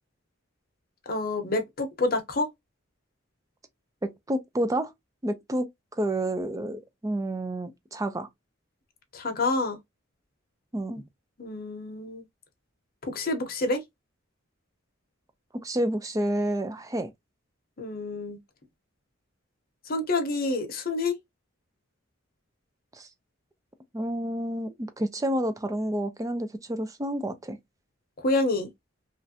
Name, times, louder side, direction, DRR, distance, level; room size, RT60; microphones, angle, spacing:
voice 1, 1.1-2.5 9.1-9.8 11.4-12.2 13.1-13.8 17.8-18.4 19.9-21.2 28.2-28.7, left 2 dB, 45° left, 0.8 m, -28 dB
voice 2, 4.3-4.9 5.2-5.7 6.0-8.3 10.7-11.0 15.6-17.1 23.0-23.1 23.9-27.6, right 1 dB, 15° right, 0.4 m, -29 dB
3.1 x 2.5 x 2.7 m
head